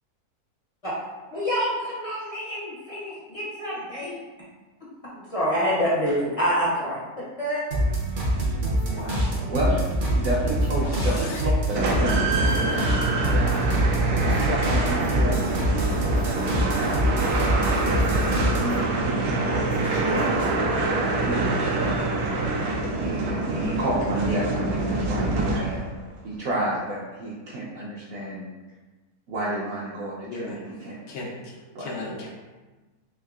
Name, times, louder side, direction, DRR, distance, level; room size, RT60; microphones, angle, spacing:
voice 1, 1.3-4.2 5.1-7.0 7.4-7.6, equal, 40° left, -8 dB, 0.5 m, -26 dB
sound 1, 7.7-18.9 19.2-20.6, right 1 dB, 50° right, 0.6 m, -25 dB
voice 2, 8.9-9.3 10.8-11.4 30.3-30.6 31.1-31.3 31.8-32.3, left 2 dB, 90° left, -3 dB, 1.2 m, -35 dB
voice 3, 9.4-12.9 13.2-15.8 16.7-18.0 18.6-20.9 21.2-22.1 23.0-25.8 26.2-28.5 29.3-31.0 31.7-31.9, right 1 dB, 70° right, -7 dB, 1.0 m, -31 dB
sound 2, 11.7-26.0, right 2 dB, 90° right, 1.1 m, -25 dB
3.6 x 3.1 x 2.3 m, 1.2 s
omnidirectional pair, 1.6 m